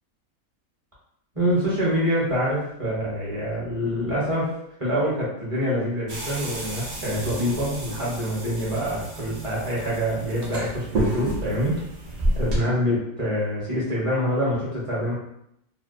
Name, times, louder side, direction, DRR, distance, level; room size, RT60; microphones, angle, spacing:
voice 1, 1.3-4.5 4.8-11.8 12.3-15.1, equal, 30° right, -7 dB, 0.7 m, -25 dB
sound 1, 6.1-12.6, right 1 dB, 60° right, 0.4 m, -30 dB
2.6 x 2.1 x 2.4 m, 0.76 s
omnidirectional pair, 1.5 m